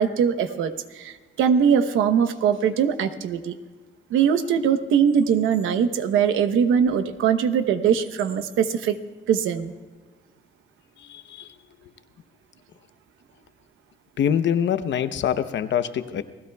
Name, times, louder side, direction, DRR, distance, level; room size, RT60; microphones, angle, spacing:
voice 1, 0.0-3.5 4.1-9.0 9.3-9.7, right 7 dB, 85° right, 10 dB, 0.9 m, -21 dB
voice 2, 11.0-11.5 14.2-16.2, left 9 dB, 65° left, 11 dB, 0.8 m, -24 dB
29.0 x 16.5 x 2.3 m, 1.5 s
cardioid pair, 90°, 20 cm